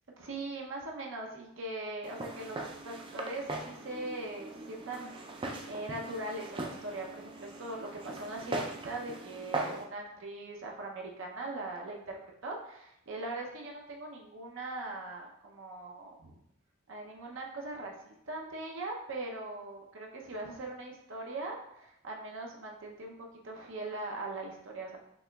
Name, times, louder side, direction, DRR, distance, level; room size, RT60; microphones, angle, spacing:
voice 1, 0.2-16.4 16.9-25.0, right 2 dB, 65° right, 0 dB, 0.6 m, -41 dB
Walk footsteps, 2.0-9.8, right 2 dB, 25° right, 0.3 m, -40 dB
6.0 x 2.9 x 2.2 m, 0.77 s
head